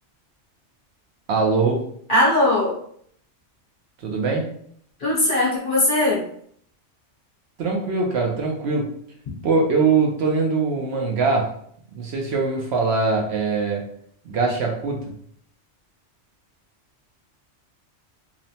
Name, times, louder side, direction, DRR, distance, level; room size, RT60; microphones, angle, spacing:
voice 1, 1.3-1.8 4.0-4.5 7.6-8.9 9.4-11.5 11.9-13.9 14.2-15.0, right 4 dB, 70° right, 0 dB, 0.8 m, -22 dB
voice 2, 2.1-2.7 5.0-6.2, left 1 dB, 45° left, -6 dB, 1.0 m, -19 dB
2.9 x 2.1 x 2.7 m, 0.65 s
omnidirectional pair, 1.2 m